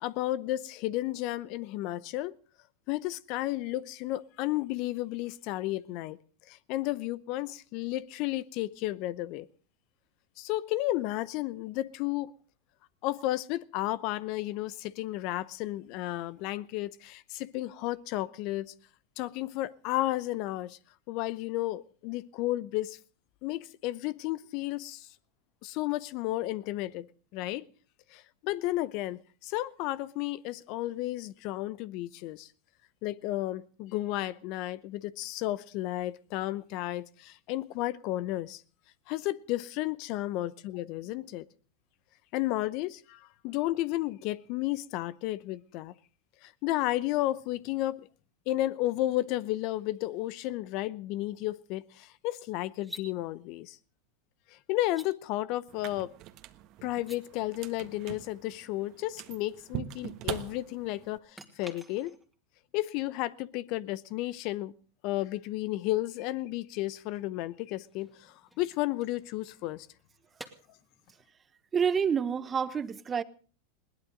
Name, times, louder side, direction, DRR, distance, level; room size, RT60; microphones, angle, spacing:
voice 1, 0.0-2.3 2.9-6.2 6.5-9.5 10.4-12.3 13.0-18.7 19.2-20.8 21.1-23.0 23.4-25.1 25.6-27.1 27.3-27.7 28.1-32.5 33.0-38.6 39.1-41.4 42.3-45.9 46.4-48.1 48.5-53.8 54.7-56.1 56.8-62.1 62.7-64.7 65.0-69.9, left 16 dB, 55° left, 0.7 m, -33 dB
sound 1, 52.7-53.1 54.8-55.1 56.9-57.2 61.3-62.4 65.6-65.7 67.6-69.8 70.4-70.5, equal, 5° right, 2.3 m, -49 dB
sound 2, 55.7-61.2, right 13 dB, 50° right, 1.3 m, -42 dB
voice 2, 71.7-73.2, right 7 dB, 25° right, 1.0 m, -28 dB
21.0 x 18.0 x 3.8 m
hypercardioid pair, 100°, 0 cm